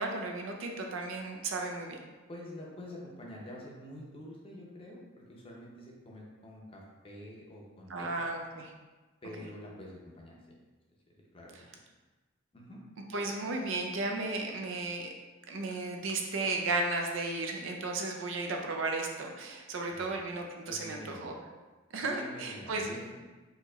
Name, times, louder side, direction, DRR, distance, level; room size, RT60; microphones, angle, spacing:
voice 1, 0.0-2.0 7.9-8.7 13.1-15.1 15.5-21.3 21.9-22.9, right 3 dB, 70° right, 2 dB, 0.5 m, -34 dB
voice 2, 2.3-8.1 9.2-10.4 11.1-11.5 12.5-12.8 19.9-20.2 20.7-21.3 22.0-23.1, left 1 dB, 25° left, -3 dB, 0.6 m, -47 dB
4.3 x 2.9 x 2.4 m, 1.2 s
head